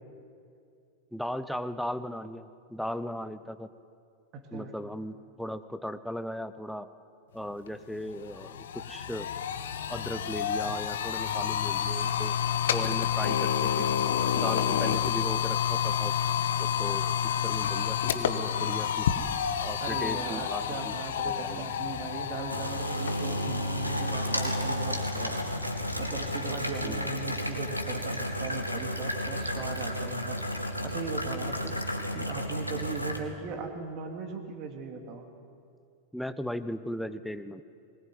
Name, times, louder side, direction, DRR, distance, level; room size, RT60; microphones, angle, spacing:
voice 1, 1.1-3.7 4.5-6.9 7.3-9.3 9.9-12.3 12.7-13.9 14.3-16.1 16.6-17.1 17.4-19.1 19.6-21.0 21.2-21.7 26.8-27.1 36.1-37.6, equal, ahead, 11 dB, 1.0 m, -37 dB
voice 2, 4.3-4.7 19.8-25.4 26.0-30.4 30.8-35.3, right 5 dB, 35° right, 5 dB, 3.3 m, -38 dB
sound 1, 7.7-7.8 8.1-27.1, left 8 dB, 60° left, 1.4 m, -30 dB
sound 2, 20.5-33.2, equal, 90° right, 2.2 m, -33 dB
23.5 x 19.5 x 9.7 m, 2.4 s
figure-of-eight pair, 90°, 0 cm